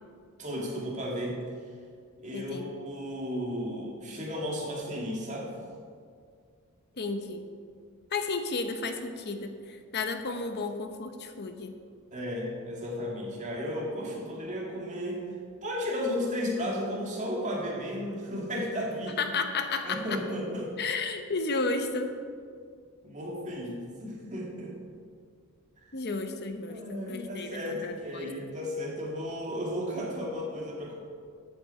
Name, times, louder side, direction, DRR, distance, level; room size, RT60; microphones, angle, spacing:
voice 1, 0.4-1.4 2.2-5.5 12.1-15.2 15.6-19.2 19.8-20.7 23.0-24.7 26.7-30.9, equal, 35° right, -2 dB, 2.2 m, -34 dB
voice 2, 2.3-2.7 7.0-7.5 8.1-11.7 19.2-20.2 20.8-22.1 25.9-28.3, left 3 dB, 50° left, 7 dB, 0.9 m, -33 dB
13.0 x 8.3 x 4.4 m, 2.1 s
head